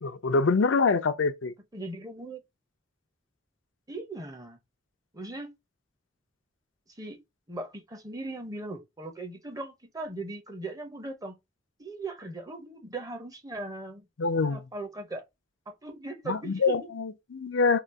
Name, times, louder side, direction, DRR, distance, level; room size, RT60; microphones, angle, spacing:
voice 1, 0.0-1.5 14.2-14.6 16.3-17.8, left 4 dB, 75° left, 0.5 m, -25 dB
voice 2, 1.7-2.4 3.9-4.6 5.1-5.5 7.0-7.2 7.5-11.4 11.8-14.1 14.4-15.3 15.7-16.8, right 2 dB, 20° right, 0.8 m, -39 dB
3.9 x 2.4 x 4.6 m
head